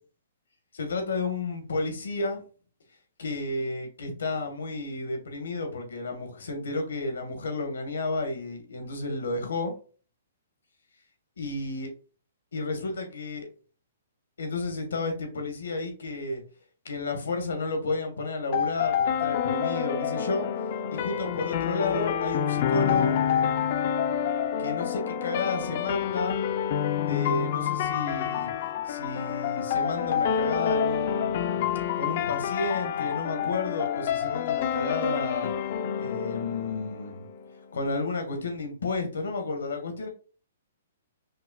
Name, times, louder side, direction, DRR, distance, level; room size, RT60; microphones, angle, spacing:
voice 1, 0.7-2.4 3.2-9.7 11.4-11.9 12.5-13.5 14.4-16.4 16.8-20.5 20.9-23.2 24.6-26.4 27.0-28.5 28.9-31.7 32.0-35.5 35.9-37.2 37.7-40.1, left 3 dB, 90° left, 5 dB, 1.3 m, -32 dB
sound 1, 18.5-37.5, left 8 dB, 45° left, 0.4 m, -28 dB
5.4 x 2.2 x 2.2 m, 0.38 s
hypercardioid pair, 155°, 0 cm